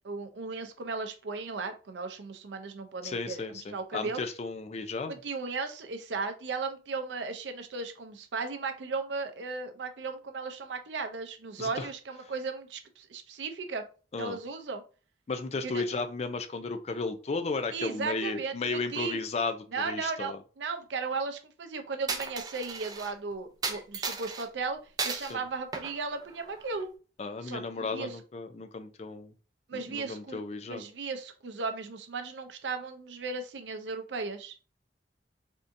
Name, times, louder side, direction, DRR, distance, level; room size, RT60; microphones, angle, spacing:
voice 1, 0.0-3.4 3.7-4.2 5.1-13.8 14.2-14.8 15.6-15.8 17.7-19.2 19.7-26.9 27.4-28.2 29.7-30.4 30.7-34.5, right 4 dB, 90° right, 7 dB, 0.5 m, -36 dB
voice 2, 3.0-5.1 11.6-11.9 14.1-14.4 15.3-20.4 25.3-25.4 27.2-29.3 29.7-30.8, left 3 dB, 35° left, 8 dB, 0.4 m, -34 dB
Coin (dropping), 22.1-23.1 23.6-24.4 25.0-25.3 25.7-26.8, right 4 dB, 20° right, 0.4 m, -35 dB
3.6 x 2.7 x 2.5 m, 0.35 s
head